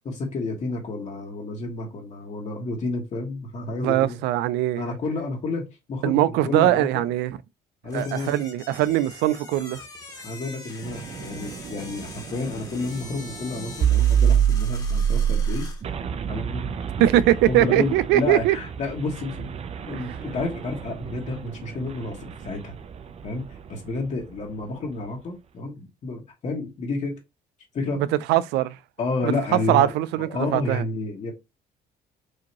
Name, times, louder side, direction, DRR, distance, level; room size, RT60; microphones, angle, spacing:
voice 1, 0.0-4.2 4.8-5.6 5.9-7.1 7.8-8.4 10.2-15.7 16.3-16.7 17.0-17.1 17.5-19.5 19.8-22.7 23.2-27.2 27.7-28.0 29.0-31.3, left 3 dB, 45° left, 1.5 m, -30 dB
voice 2, 3.8-4.9 6.0-7.4 7.9-9.8 17.0-18.6 19.9-20.2 28.0-28.8 29.2-29.3 29.7-30.8, right 14 dB, 90° right, 0.4 m, -21 dB
sound 1, 7.9-15.8, left 3 dB, 20° left, 1.4 m, -43 dB
sound 2, 10.8-23.6, right 8 dB, 40° right, 0.5 m, -27 dB
4.9 x 2.8 x 2.9 m
cardioid pair, 110°, 17 cm